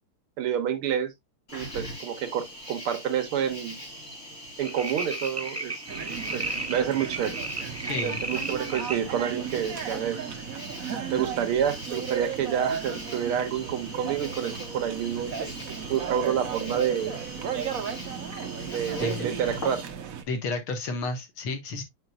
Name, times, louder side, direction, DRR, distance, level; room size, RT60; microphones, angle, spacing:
voice 1, 0.4-1.1 1.5-3.8 4.6-5.7 6.3-7.4 8.0-10.2 11.1-15.3 15.9-17.2 18.7-19.8, right 9 dB, 80° right, 2.1 m, -28 dB
Cricket, 1.5-19.8, equal, 35° left, 3.5 m, -42 dB
sound 1, 4.6-9.0 9.6-9.7, right 2 dB, 15° right, 0.4 m, -34 dB
sound 2, 5.9-20.2, right 7 dB, 55° right, 1.0 m, -35 dB
voice 2, 7.8-8.2 19.0-19.3 20.3-21.8, left 3 dB, 70° left, 2.2 m, -31 dB
8.9 x 4.9 x 2.3 m
omnidirectional pair, 2.4 m